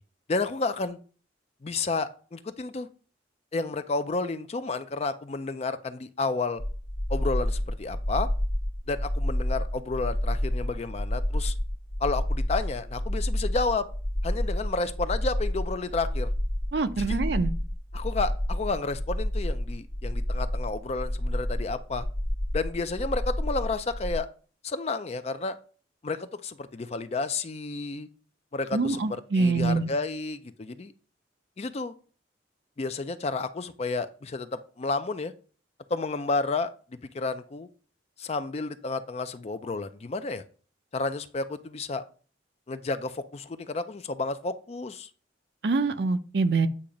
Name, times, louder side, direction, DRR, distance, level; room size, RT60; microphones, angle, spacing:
voice 1, 0.3-1.0 1.6-2.9 3.5-6.6 7.1-8.3 8.9-11.5 12.0-13.8 14.2-16.3 17.0-17.2 17.9-22.1 22.5-24.3 24.6-25.6 26.0-28.1 28.5-29.0 29.3-30.9 31.6-31.9 32.8-35.3 35.9-37.7 38.2-40.4 40.9-42.0 42.7-45.1, left 3 dB, 35° left, 11 dB, 0.4 m, -31 dB
sound 1, 6.6-24.2, left 1 dB, 70° left, 1.2 m, -29 dB
voice 2, 16.7-17.5 28.7-29.9 45.6-46.7, right 3 dB, 60° right, 9 dB, 0.5 m, -25 dB
8.5 x 2.9 x 5.1 m, 0.40 s
head